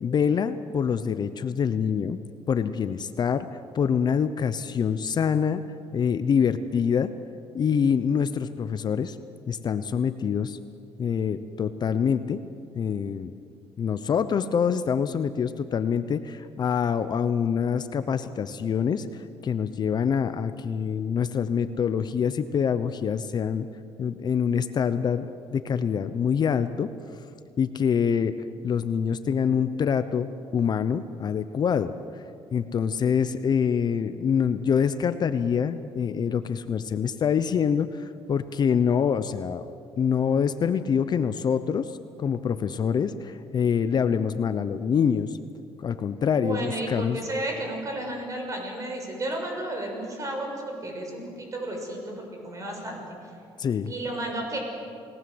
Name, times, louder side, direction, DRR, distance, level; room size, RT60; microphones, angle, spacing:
voice 1, 0.0-2.2 2.5-5.6 5.9-7.1 7.5-9.2 9.5-10.6 11.0-12.4 12.7-13.3 13.8-23.7 24.0-25.3 25.5-26.9 27.6-28.3 28.6-31.9 32.5-45.4 45.8-47.2 53.6-53.9, left 7 dB, 45° left, 12 dB, 0.8 m, -25 dB
voice 2, 46.3-53.0 53.9-54.6, right 1 dB, 30° right, 2 dB, 6.3 m, -32 dB
29.0 x 19.0 x 7.9 m, 2.5 s
cardioid pair, 125°, 10 cm